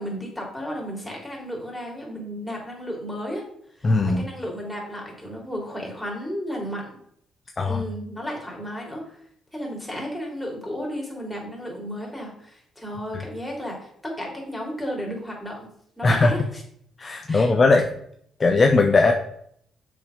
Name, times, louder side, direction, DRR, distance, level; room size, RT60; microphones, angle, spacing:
voice 1, 0.0-3.4 3.8-7.0 7.7-9.2 9.5-15.7 16.0-16.6 17.3-17.5, equal, 5° left, -2 dB, 3.2 m, -33 dB
voice 2, 3.8-4.2 7.6-7.8 16.0-16.3 17.0-17.9 18.4-19.1, left 3 dB, 35° left, 4 dB, 0.7 m, -18 dB
6.8 x 5.3 x 5.1 m, 0.68 s
cardioid pair, 90°, 0 cm